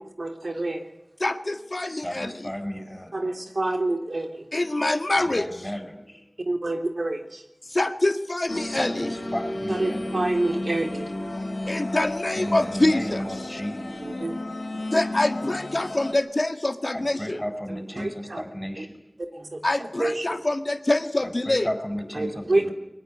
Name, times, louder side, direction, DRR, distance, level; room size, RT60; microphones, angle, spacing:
voice 1, 0.2-0.8 3.1-4.5 6.5-7.4 9.7-11.1 14.0-14.3 14.9-15.0 18.0-18.4 18.8-18.9 19.2-19.5 20.0-20.4 22.2-22.7, right 2 dB, 80° right, 4 dB, 3.5 m, -27 dB
voice 2, 1.2-2.5 4.5-5.5 7.8-9.1 11.7-13.2 14.9-17.4 19.6-21.7, left 2 dB, 55° left, 7 dB, 1.7 m, -25 dB
voice 3, 1.8-3.3 5.2-6.2 8.5-10.1 12.4-14.2 16.9-19.1 19.4-19.6 21.2-22.7, equal, 10° left, 6 dB, 7.9 m, -34 dB
sound 1, 8.5-16.1, left 1 dB, 80° left, 3.9 m, -33 dB
23.0 x 20.0 x 9.5 m, 0.86 s
wide cardioid pair, 45°, 0 cm